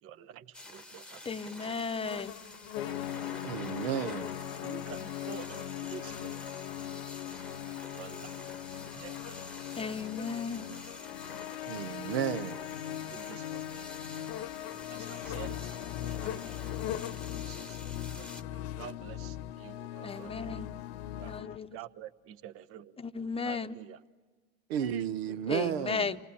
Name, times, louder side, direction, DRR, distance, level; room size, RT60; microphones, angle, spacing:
voice 1, 0.0-1.8 4.6-6.6 7.9-9.4 9.7-10.2 13.1-13.9 14.2-14.4 14.9-16.7 17.1-17.8 18.2-20.6 21.0-23.0 23.4-24.0, right 10 dB, 45° right, 0.9 m, -49 dB
sound 1, 0.5-18.4, left 2 dB, 5° left, 1.2 m, -48 dB
voice 2, 1.3-2.4 9.8-10.7 20.0-20.7 21.2-21.7 23.0-23.7 25.5-26.2, left 5 dB, 20° left, 0.8 m, -35 dB
sound 2, 2.0-21.4, left 11 dB, 60° left, 0.9 m, -47 dB
sound 3, 2.8-21.6, left 12 dB, 85° left, 0.7 m, -40 dB
voice 3, 3.3-4.3 11.7-12.6 24.7-26.1, right 10 dB, 85° right, 0.8 m, -33 dB
28.0 x 19.0 x 8.4 m
hypercardioid pair, 95°, 30 cm